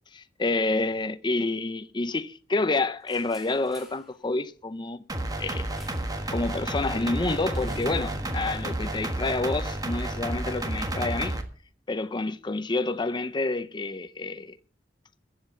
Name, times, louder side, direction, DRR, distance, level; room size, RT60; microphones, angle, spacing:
voice 1, 0.1-5.0 5.4-5.7 6.3-11.4 11.9-14.6, left 2 dB, 25° left, 0.5 m, -28 dB
sound 1, 3.1-4.1 5.8-6.2 6.4-6.7 7.5-9.9, equal, ahead, 3.3 m, -45 dB
sound 2, 5.1-11.4, right 1 dB, 20° right, 1.5 m, -31 dB
15.0 x 7.7 x 7.0 m
head